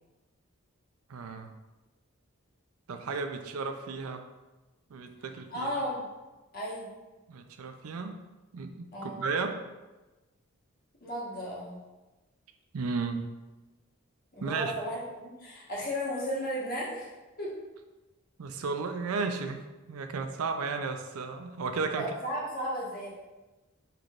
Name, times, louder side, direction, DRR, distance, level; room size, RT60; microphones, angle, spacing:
voice 1, 1.1-1.5 2.9-4.3 4.9-5.8 7.3-8.2 8.5-9.6 12.7-13.3 14.4-14.7 18.4-22.1, right 4 dB, 85° right, 7 dB, 0.5 m, -34 dB
voice 2, 5.5-6.1 6.5-6.9 8.9-9.2 11.0-11.8 14.3-17.1 17.4-17.5 21.9-23.1, equal, 45° left, -6 dB, 1.4 m, -34 dB
5.8 x 3.3 x 2.5 m, 1.1 s
head